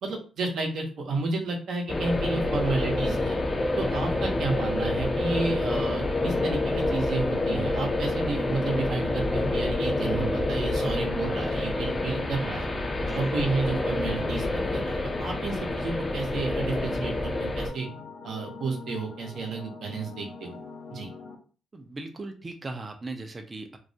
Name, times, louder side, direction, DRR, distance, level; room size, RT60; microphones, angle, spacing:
voice 1, 0.0-3.4 3.8-12.7 13.1-17.9 18.2-20.6 20.9-21.1, right 3 dB, 70° right, 1 dB, 0.7 m, -31 dB
sound 1, 1.9-21.3, left 4 dB, 80° left, 0.6 m, -44 dB
sound 2, 1.9-17.7, left 2 dB, 30° left, 0.4 m, -28 dB
voice 2, 3.9-4.3 13.0-13.3 21.7-23.8, right 2 dB, 30° right, 5 dB, 0.4 m, -39 dB
2.3 x 2.1 x 2.6 m, 0.36 s
cardioid pair, 75°, 0 cm